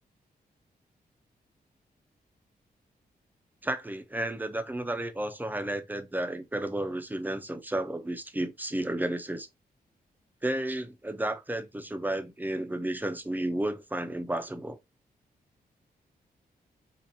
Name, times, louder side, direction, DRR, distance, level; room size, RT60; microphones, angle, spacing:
voice 1, 3.6-9.5 10.4-14.8, right 1 dB, 10° right, 0.6 m, -32 dB
4.1 x 2.5 x 2.7 m
cardioid pair, 80°, 17 cm